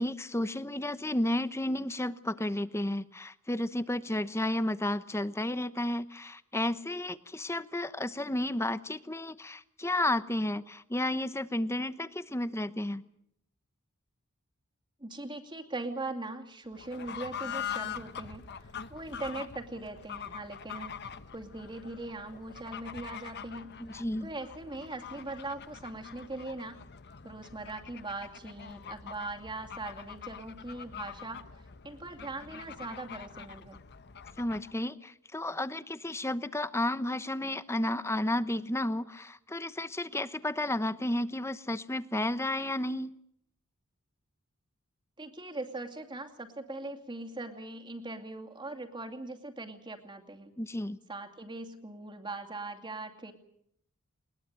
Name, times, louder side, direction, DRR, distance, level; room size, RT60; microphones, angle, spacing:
voice 1, 0.0-13.0 23.8-24.3 34.4-43.1 50.6-51.0, left 1 dB, 15° left, 14 dB, 0.9 m, -32 dB
voice 2, 15.0-18.4 18.9-20.9 21.3-23.8 24.2-26.8 27.2-31.5 31.8-33.8 45.2-50.5 51.1-53.3, right 2 dB, 20° right, 5 dB, 2.5 m, -40 dB
Fowl / Bird, 16.7-34.8, left 8 dB, 50° left, 1.0 m, -44 dB
21.0 x 21.0 x 9.0 m, 0.73 s
head